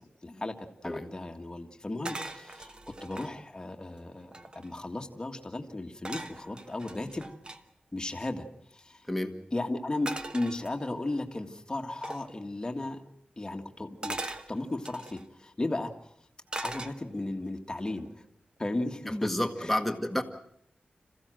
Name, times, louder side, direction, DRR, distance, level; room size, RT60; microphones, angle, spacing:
voice 1, 0.0-7.3 7.9-8.5 8.7-9.0 9.5-13.0 13.4-15.9 16.6-18.2 18.6-19.3 19.6-19.7, left 2 dB, 25° left, 4 dB, 1.8 m, -35 dB
sound 1, 2.0-3.3 3.9-4.0 4.2-4.8 6.0-7.6 10.1-11.1 12.0-12.3 14.0-15.2 16.5-17.3 17.8-18.1, right 2 dB, 30° right, 1.1 m, -40 dB
voice 2, 19.1-20.2, left 1 dB, ahead, 4 dB, 1.9 m, -30 dB
27.0 x 15.5 x 7.7 m, 0.71 s
wide cardioid pair, 120°, 3 cm